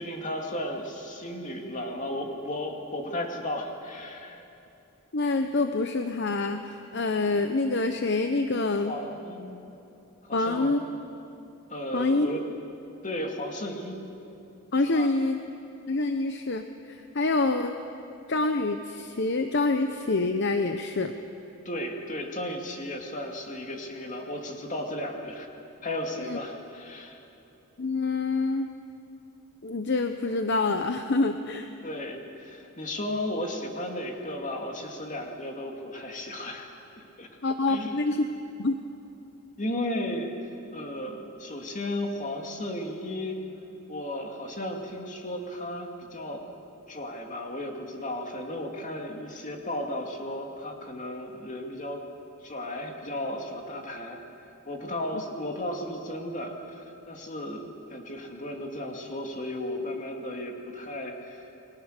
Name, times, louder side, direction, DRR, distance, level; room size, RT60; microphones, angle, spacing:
voice 1, 0.0-4.4 8.8-9.6 10.2-10.7 11.7-12.4 13.0-14.0 14.9-15.1 21.6-25.5 25.8-27.2 31.8-36.7 37.0-37.3 37.7-38.0 39.6-40.3 40.7-43.4 43.9-46.5 46.9-52.0 52.4-61.5, left 1 dB, 35° left, 2 dB, 2.6 m, -34 dB
voice 2, 5.1-8.9 10.3-10.8 11.9-12.3 14.7-15.4 15.9-17.7 18.3-21.1 26.2-26.4 27.8-28.7 29.6-31.7 37.4-38.3 38.6-38.8, left 3 dB, 55° left, 7 dB, 0.9 m, -26 dB
29.5 x 21.5 x 6.7 m, 2.9 s
head